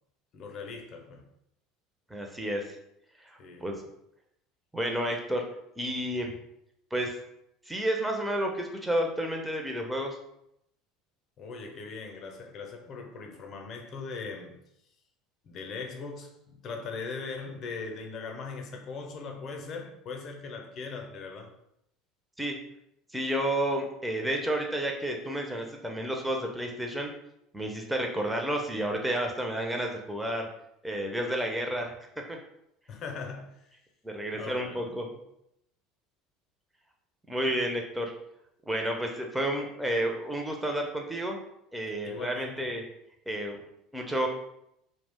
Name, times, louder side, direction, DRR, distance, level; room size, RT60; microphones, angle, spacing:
voice 1, 0.3-1.2 3.4-3.7 11.4-14.6 15.4-21.5 32.9-33.6 34.3-34.9 37.4-37.6 42.0-42.7, left 4 dB, 45° left, 0.5 m, -40 dB
voice 2, 2.1-2.8 3.2-3.7 4.7-5.4 5.8-6.3 6.9-7.2 7.7-10.2 22.4-22.6 23.1-27.1 27.5-30.5 30.8-31.9 32.3-32.4 34.0-35.1 37.3-38.1 38.7-41.4 41.7-42.8 43.3-43.6 43.9-44.3, right 1 dB, 5° right, 0.5 m, -31 dB
2.4 x 2.0 x 3.5 m
figure-of-eight pair, 70°, 0 cm